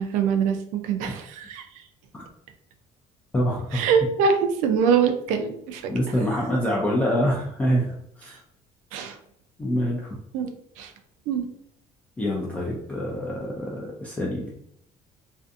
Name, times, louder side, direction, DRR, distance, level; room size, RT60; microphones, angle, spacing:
voice 1, 0.0-1.6 3.7-5.9 8.3-8.4 8.9-9.2 10.3-10.9 11.3-11.4, right 6 dB, 90° right, 6 dB, 0.4 m, -24 dB
voice 2, 3.3-3.8 5.9-8.4 9.6-10.2 12.2-14.5, equal, 10° left, -4 dB, 0.3 m, -26 dB
2.5 x 2.4 x 2.4 m, 0.73 s
cardioid pair, 165°, 12 cm